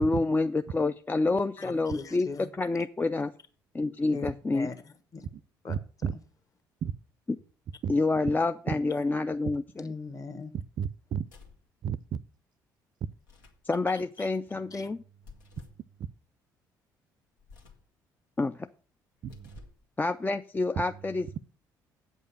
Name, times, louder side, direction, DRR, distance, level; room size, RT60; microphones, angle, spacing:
voice 1, 0.0-2.3 2.6-3.3 3.7-4.7 7.9-9.8 13.6-15.0 18.4-18.7 20.0-21.4, left 3 dB, 15° left, 0.4 m, -28 dB
voice 2, 1.6-2.5 4.1-5.3 5.6-5.8 9.8-10.5 13.9-14.3 14.7-14.9, left 4 dB, 35° left, 1.4 m, -41 dB
voice 3, 5.7-6.1 6.8-6.9 7.8-7.9 10.8-11.2 11.8-12.2 19.2-19.6, right 8 dB, 45° right, 0.5 m, -32 dB
sound 1, 11.2-11.7 13.1-13.7 15.2-15.9 17.4-17.9 19.1-19.9, left 4 dB, 80° left, 1.5 m, -53 dB
8.3 x 5.4 x 7.3 m
figure-of-eight pair, 50°, 10 cm